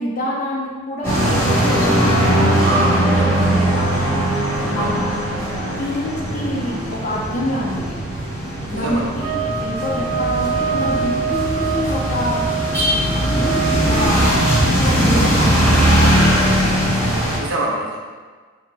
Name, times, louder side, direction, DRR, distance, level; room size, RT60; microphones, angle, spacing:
voice 1, 0.0-4.2 4.7-5.2 5.8-8.0 8.7-12.5 13.1-16.2, equal, 40° left, -3 dB, 0.5 m, -27 dB
sound 1, 1.0-17.4, equal, 10° left, 0.8 m, -19 dB
voice 2, 2.6-3.4 4.8-4.9 8.7-9.1 17.4-18.0, right 2 dB, 70° right, -2 dB, 0.5 m, -24 dB
sound 2, 9.2-14.6, right 6 dB, 20° right, 0.6 m, -25 dB
3.1 x 2.0 x 3.3 m, 1.5 s
head